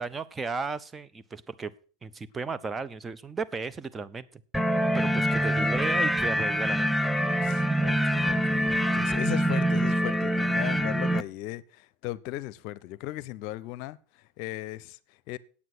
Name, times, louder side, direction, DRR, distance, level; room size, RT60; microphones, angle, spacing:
voice 1, 0.0-1.7 2.0-4.4 4.9-7.1, right 4 dB, 20° right, 0.9 m, -35 dB
sound 1, 4.5-11.2, equal, ahead, 0.6 m, -25 dB
voice 2, 5.2-6.0 7.4-15.4, left 16 dB, 60° left, 0.7 m, -38 dB
9.4 x 8.6 x 6.2 m
hypercardioid pair, 85°, 0 cm